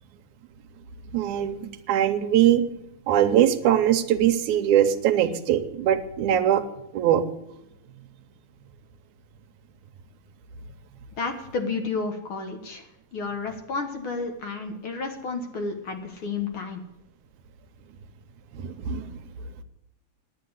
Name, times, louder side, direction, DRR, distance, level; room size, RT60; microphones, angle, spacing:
voice 1, 1.1-2.6 3.1-6.6 6.9-7.2 18.5-19.2, right 10 dB, 90° right, 9 dB, 2.4 m, -22 dB
voice 2, 11.2-12.8 13.1-16.8, left 4 dB, 55° left, 5 dB, 1.9 m, -31 dB
10.5 x 9.4 x 7.9 m, 0.86 s
omnidirectional pair, 3.3 m